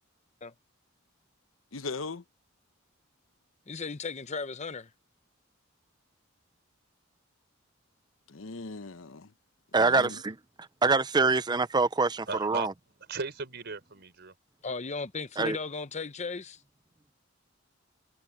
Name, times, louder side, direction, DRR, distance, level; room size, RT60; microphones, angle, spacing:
voice 1, 1.7-2.2 8.3-9.3 9.7-10.2, left 3 dB, 75° left, 1.0 m, -39 dB
voice 2, 3.7-4.9 14.6-16.6, left 4 dB, 35° left, 0.9 m, -36 dB
voice 3, 9.7-10.4 10.8-12.7 15.4-15.6, right 3 dB, 20° right, 0.6 m, -25 dB
voice 4, 12.3-12.7 13.1-14.3, right 3 dB, 55° right, 4.6 m, -36 dB
head